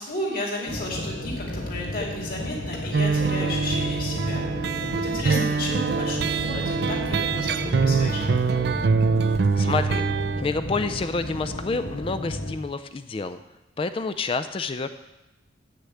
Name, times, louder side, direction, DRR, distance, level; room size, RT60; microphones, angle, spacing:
voice 1, 0.0-8.6, left 1 dB, 45° left, -2 dB, 2.6 m, -33 dB
sound 1, 0.7-12.5, left 1 dB, 90° left, 1.7 m, -33 dB
sound 2, 2.9-10.4, right 4 dB, 60° right, 0.4 m, -24 dB
voice 2, 9.3-10.0 10.4-13.4 13.8-14.9, left 4 dB, 30° left, 11 dB, 0.3 m, -28 dB
7.8 x 6.6 x 8.3 m, 1.0 s
head